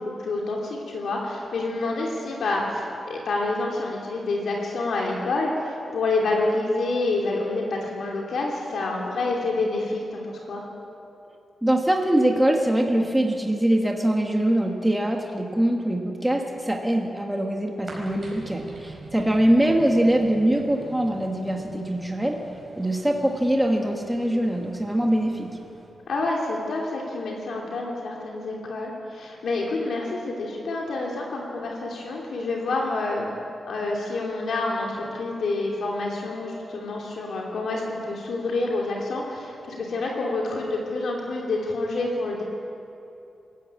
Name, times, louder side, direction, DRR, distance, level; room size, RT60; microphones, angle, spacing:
voice 1, 0.0-10.6 26.1-33.3 33.7-42.4, left 2 dB, 65° left, -2 dB, 2.8 m, -28 dB
voice 2, 11.6-22.4 22.8-25.5, right 1 dB, 5° right, 1 dB, 1.5 m, -23 dB
sound 1, 17.9-25.9, right 2 dB, 25° right, 4.8 m, -45 dB
23.5 x 13.5 x 8.8 m, 2.6 s
wide cardioid pair, 175°, 0 cm